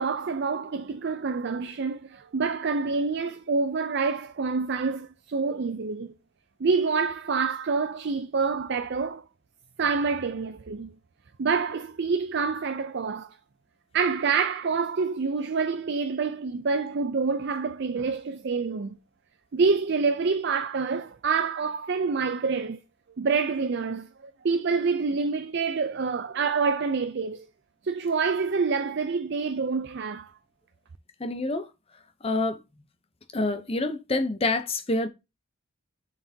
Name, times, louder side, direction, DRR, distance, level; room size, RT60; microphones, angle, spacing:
voice 1, 0.0-6.1 6.6-9.2 9.8-10.9 11.4-13.3 13.9-19.0 19.5-22.8 23.2-27.5 27.8-30.3, right 4 dB, 50° right, 0.5 m, -27 dB
voice 2, 31.2-31.7 32.2-32.6 33.3-35.1, left 2 dB, 25° left, 0.7 m, -27 dB
7.5 x 6.5 x 2.8 m
head